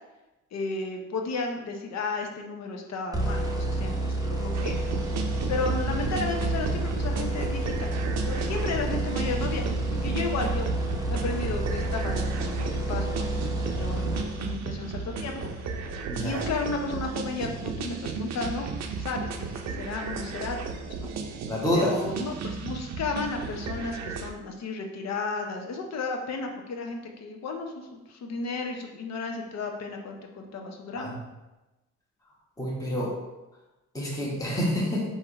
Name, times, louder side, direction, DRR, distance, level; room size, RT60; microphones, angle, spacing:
voice 1, 0.5-4.8 5.5-7.9 8.3-10.7 11.1-13.3 13.6-15.4 16.2-18.7 19.0-21.1 21.7-31.1, left 3 dB, 60° left, 3 dB, 0.8 m, -33 dB
sound 1, 3.1-14.8, right 2 dB, 10° right, 0.7 m, -29 dB
sound 2, 4.5-24.3, right 4 dB, 60° right, 0.5 m, -34 dB
voice 2, 16.1-16.4 21.5-21.9 30.9-31.1 32.6-33.1 33.9-35.0, left 1 dB, 10° left, -5 dB, 1.3 m, -27 dB
3.5 x 2.8 x 4.7 m, 1.0 s
cardioid pair, 90°, 30 cm